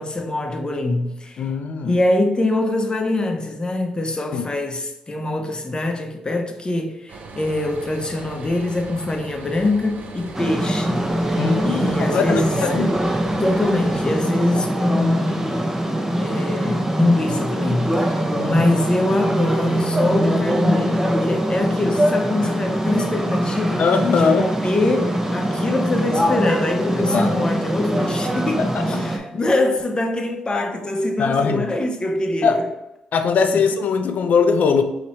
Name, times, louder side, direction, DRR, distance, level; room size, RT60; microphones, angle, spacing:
voice 1, 0.0-1.5 1.8-13.0 13.4-15.6 16.2-32.7 33.5-33.6, left 2 dB, 30° left, 0.8 m, -24 dB
voice 2, 1.4-1.9 4.3-4.4 11.4-12.9 18.3-18.7 23.8-24.4 27.1-27.4 28.6-29.0 29.3-29.4 31.2-31.7 32.4-32.6 33.1-34.8, left 5 dB, 65° left, 0.5 m, -21 dB
sound 1, 7.1-14.1, right 3 dB, 60° right, 0.7 m, -38 dB
sound 2, 10.3-29.2, right 1 dB, 15° right, 0.6 m, -22 dB
3.0 x 2.9 x 4.1 m
supercardioid pair, 50°, 3 cm